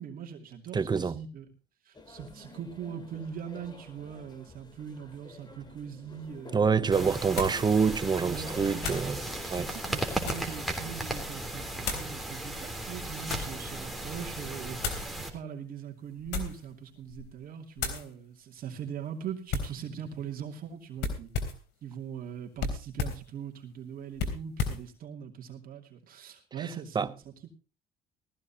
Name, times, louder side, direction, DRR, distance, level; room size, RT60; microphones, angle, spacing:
voice 1, 0.0-1.4 1.8-7.1 8.2-8.9 9.4-21.3 21.8-27.3, right 8 dB, 60° right, 2.6 m, -41 dB
voice 2, 0.7-1.2 6.5-9.2 9.5-9.7 26.9-27.1, right 5 dB, 25° right, 0.8 m, -26 dB
sound 1, 1.9-10.7, left 3 dB, 25° left, 2.7 m, -50 dB
sound 2, 6.2-6.3 7.4-7.7 8.8-9.1 9.8-10.6 11.8-12.1 12.9-13.6 14.8-15.1 16.2-16.7 17.1-17.4 17.8-18.1 19.5-19.8 21.0-21.7 22.6-23.3 24.2-24.9, left 5 dB, 80° left, 3.6 m, -34 dB
sound 3, 6.9-15.3, right 1 dB, ahead, 3.4 m, -36 dB
18.5 x 14.5 x 2.9 m
cardioid pair, 110°, 17 cm